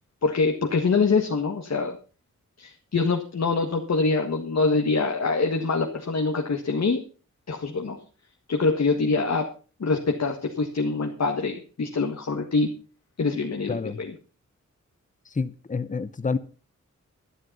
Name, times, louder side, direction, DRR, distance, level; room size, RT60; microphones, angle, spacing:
voice 1, 0.2-2.0 2.6-7.0 7.5-8.0 8.5-9.5 9.8-12.7 13.2-14.1, left 4 dB, 60° left, 3 dB, 1.8 m, -24 dB
voice 2, 13.7-14.0 15.3-16.4, left 4 dB, 25° left, 13 dB, 0.8 m, -28 dB
12.0 x 11.0 x 5.5 m, 0.36 s
wide cardioid pair, 125°, 29 cm